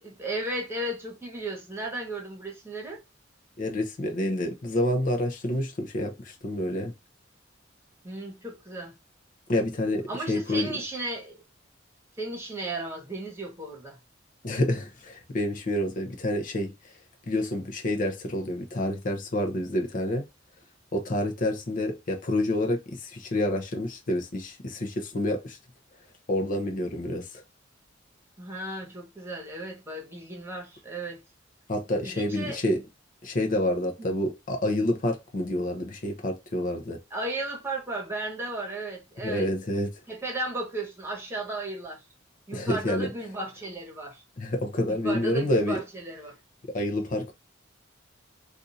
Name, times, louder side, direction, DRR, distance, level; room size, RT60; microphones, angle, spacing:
voice 1, 0.0-3.0 8.0-9.0 10.1-11.4 12.2-14.0 28.4-31.2 32.0-32.6 34.0-34.2 37.1-39.5 40.1-42.0 42.5-44.2 44.9-46.3, right 2 dB, 15° right, 1.1 m, -35 dB
voice 2, 3.6-6.9 9.5-10.7 14.4-16.7 17.3-20.2 20.9-25.6 26.3-27.2 31.7-32.8 33.2-37.0 39.2-39.9 42.5-43.1 44.4-45.8 46.7-47.3, left 1 dB, 45° left, 0.7 m, -28 dB
2.6 x 2.5 x 4.0 m
head